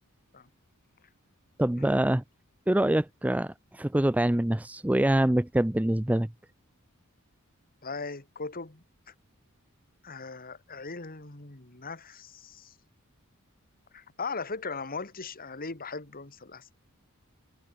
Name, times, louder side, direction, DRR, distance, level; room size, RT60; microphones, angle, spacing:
voice 1, 1.6-2.2 2.7-6.3, right 1 dB, 5° right, 0.5 m, -25 dB
voice 2, 7.8-9.1 10.0-12.7 13.9-16.7, left 4 dB, 40° left, 2.4 m, -39 dB
head